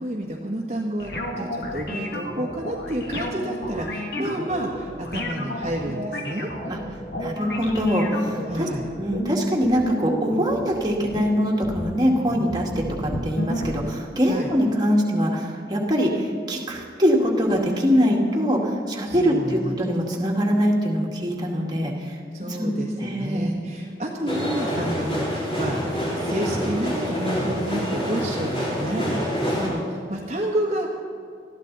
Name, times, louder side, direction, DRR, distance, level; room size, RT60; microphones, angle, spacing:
voice 1, 0.0-6.5 8.5-8.9 14.3-14.5 19.0-19.8 22.3-25.8 26.2-30.9, right 1 dB, 40° right, -3 dB, 1.5 m, -30 dB
sound 1, 1.0-13.7, left 1 dB, 60° left, 2.2 m, -32 dB
voice 2, 4.1-4.6 6.7-6.8 7.2-8.7 9.0-22.2 22.6-23.5, equal, 25° right, -2 dB, 2.1 m, -23 dB
sound 2, 24.3-29.7, equal, 35° left, 4.8 m, -27 dB
20.5 x 14.0 x 4.1 m, 2.3 s
head